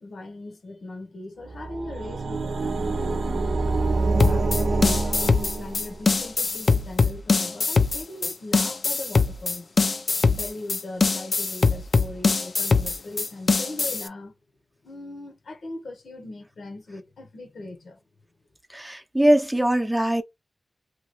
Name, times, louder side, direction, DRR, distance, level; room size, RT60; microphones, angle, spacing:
voice 1, 0.0-3.5 4.2-9.7 10.3-14.3 14.8-18.0, left 2 dB, 85° left, 0.9 m, -39 dB
sound 1, 1.5-6.1, right 3 dB, 80° right, 0.5 m, -26 dB
sound 2, 4.2-14.1, left 4 dB, 60° left, 0.4 m, -22 dB
voice 2, 18.7-20.2, right 1 dB, 10° right, 0.5 m, -21 dB
2.8 x 2.3 x 2.9 m
wide cardioid pair, 90°, 0 cm